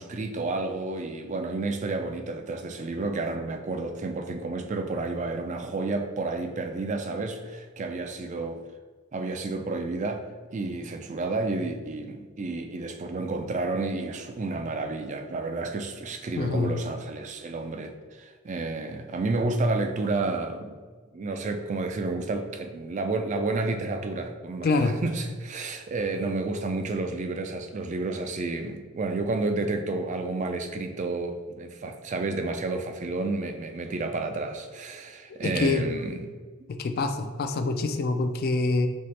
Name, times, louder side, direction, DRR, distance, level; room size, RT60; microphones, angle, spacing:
voice 1, 0.0-8.6 9.1-10.2 10.5-20.8 21.1-36.3, right 3 dB, 35° right, 6 dB, 0.3 m, -30 dB
voice 2, 16.3-16.8 24.6-25.0 35.4-35.8 36.7-38.9, left 3 dB, 45° left, 7 dB, 0.3 m, -25 dB
4.2 x 3.8 x 3.2 m, 1.5 s
head